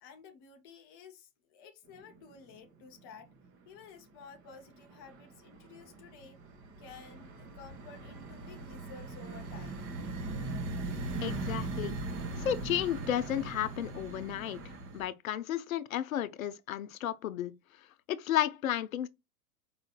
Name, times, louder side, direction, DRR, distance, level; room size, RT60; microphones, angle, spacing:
voice 1, 0.0-3.3 3.7-6.4 6.8-9.9, left 5 dB, 20° left, 0.3 m, -53 dB
sound 1, 2.0-2.5 2.8-3.6 3.9-15.1, right 2 dB, 25° right, 1.1 m, -40 dB
voice 2, 11.2-12.0 12.4-14.6 14.9-17.5 18.1-19.1, left 11 dB, 60° left, 0.6 m, -33 dB
4.9 x 3.8 x 2.2 m
figure-of-eight pair, 95°, 49 cm